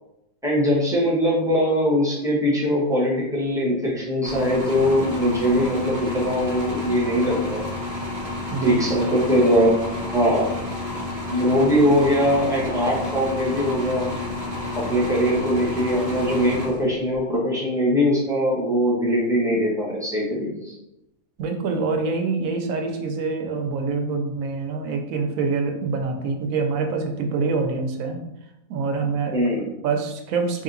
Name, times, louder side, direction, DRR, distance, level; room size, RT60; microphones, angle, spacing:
voice 1, 0.4-7.7 8.6-9.7 10.1-10.5 11.3-14.1 14.7-20.7 29.3-29.7, equal, 5° right, -5 dB, 0.9 m, -21 dB
sound 1, 4.2-17.2, left 2 dB, 20° right, 0.5 m, -30 dB
voice 2, 21.4-28.2 28.7-29.4 29.8-30.6, right 4 dB, 80° right, 4 dB, 1.0 m, -25 dB
3.3 x 2.8 x 3.8 m, 0.87 s
omnidirectional pair, 1.4 m